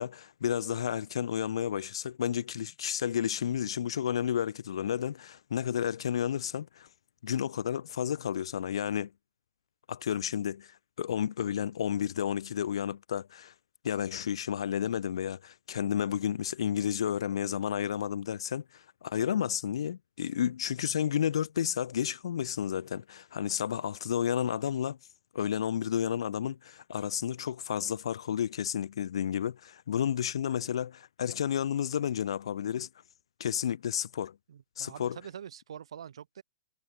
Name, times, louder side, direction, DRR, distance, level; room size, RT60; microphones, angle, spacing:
voice 1, 0.0-6.9 7.2-9.1 9.9-13.5 13.8-25.0 25.3-32.9 33.4-34.4 34.8-35.2, left 9 dB, 75° left, 0.7 m, -31 dB
voice 2, 34.5-36.4, right 8 dB, 80° right, 1.0 m, -45 dB
hypercardioid pair, 130°, 3 cm